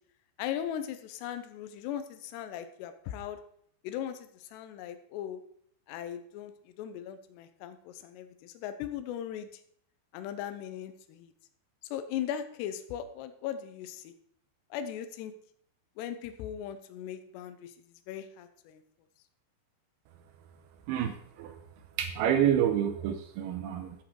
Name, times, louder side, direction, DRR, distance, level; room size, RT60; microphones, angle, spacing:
voice 1, 0.4-3.4 3.8-5.4 5.9-9.5 10.1-11.3 11.9-14.1 14.7-15.3 16.0-17.7 18.1-18.8, left 10 dB, 75° left, 9 dB, 2.8 m, -38 dB
voice 2, 22.0-24.0, right 10 dB, 85° right, 7 dB, 2.3 m, -28 dB
13.5 x 6.4 x 4.7 m, 0.64 s
omnidirectional pair, 5.4 m